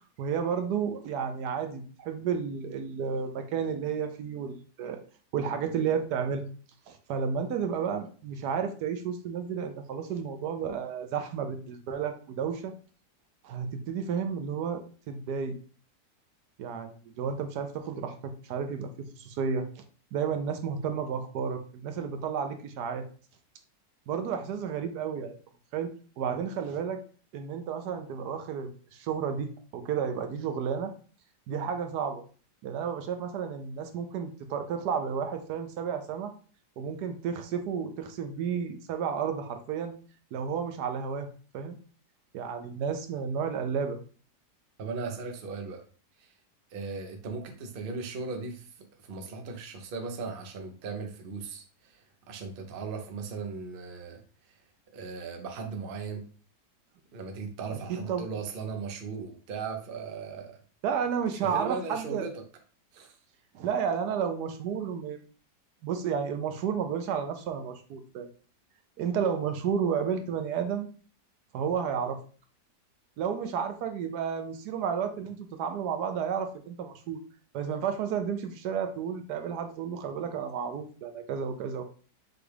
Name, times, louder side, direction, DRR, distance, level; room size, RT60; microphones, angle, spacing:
voice 1, 0.2-5.0 5.3-6.4 6.9-12.7 13.4-15.6 16.6-19.8 20.1-23.0 24.1-25.4 25.7-25.9 26.2-27.0 27.3-30.9 31.5-32.2 32.6-36.3 36.8-39.9 40.3-41.3 41.5-41.8 42.3-44.0 57.9-58.3 60.8-62.3 63.5-65.2 65.8-68.3 69.0-70.9 71.5-72.2 73.2-77.2 77.5-81.8, right 7 dB, 75° right, 7 dB, 1.2 m, -32 dB
voice 2, 44.8-45.8 46.2-46.3 46.7-54.6 54.9-56.3 57.1-60.6 61.4-62.3 62.9-63.2, right 4 dB, 50° right, 4 dB, 0.7 m, -38 dB
6.1 x 2.4 x 3.3 m, 0.39 s
omnidirectional pair, 1.8 m